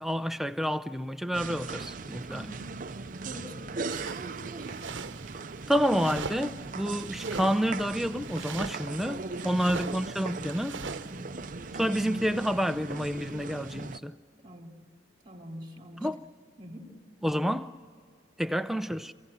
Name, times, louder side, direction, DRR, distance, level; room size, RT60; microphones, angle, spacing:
voice 1, 0.0-2.5 5.7-10.8 11.8-14.2 16.0-16.2 17.2-17.8 18.4-19.1, equal, ahead, 0.5 m, -29 dB
sound 1, 1.3-14.0, right 4 dB, 45° right, 0.6 m, -39 dB
voice 2, 2.3-2.8 3.2-4.7 9.3-9.6 11.0-11.5 14.4-14.8 15.2-16.1 16.6-16.9, right 1 dB, 25° right, 3.0 m, -45 dB
sound 2, 3.9-11.1, right 5 dB, 85° right, 0.9 m, -42 dB
27.5 x 16.0 x 9.9 m
head